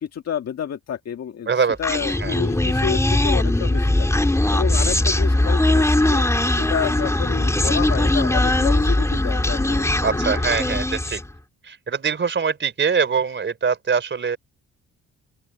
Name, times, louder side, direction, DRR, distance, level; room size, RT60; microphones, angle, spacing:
voice 1, 0.0-1.5 1.8-4.1 4.5-6.3 6.6-10.2, left 8 dB, 55° left, 1.9 m, -29 dB
voice 2, 1.5-1.8 2.2-2.4 10.0-11.2 11.6-14.4, right 6 dB, 40° right, 3.6 m, -23 dB
Human voice, 1.8-11.3, left 1 dB, 10° left, 2.8 m, -20 dB
open air
cardioid pair, 90°, 30 cm